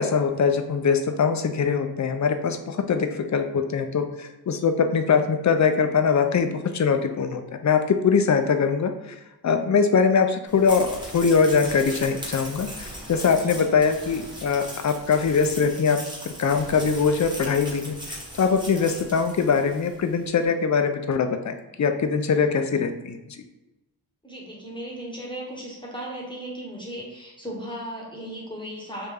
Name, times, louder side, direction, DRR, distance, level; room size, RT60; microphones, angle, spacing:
voice 1, 0.0-9.1 9.4-16.0 16.4-23.2, left 5 dB, 50° left, 7 dB, 0.4 m, -22 dB
sound 1, 10.5-20.0, equal, 10° right, 1.0 m, -39 dB
voice 2, 24.2-29.1, right 1 dB, 10° left, -3 dB, 1.0 m, -36 dB
3.4 x 2.6 x 3.3 m, 1.0 s
wide cardioid pair, 65°, 39 cm